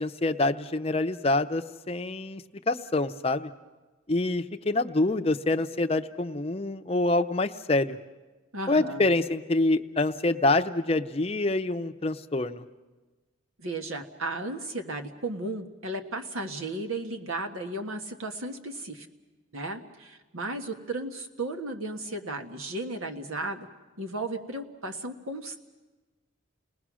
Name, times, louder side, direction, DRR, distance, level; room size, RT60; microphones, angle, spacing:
voice 1, 0.0-3.5 4.1-8.0 8.7-12.6, left 2 dB, 30° left, 7 dB, 0.6 m, -26 dB
voice 2, 8.5-9.1 13.6-19.1 19.5-23.7 24.0-25.6, right 2 dB, 80° right, 5 dB, 1.6 m, -35 dB
30.0 x 19.0 x 6.2 m, 1.2 s
head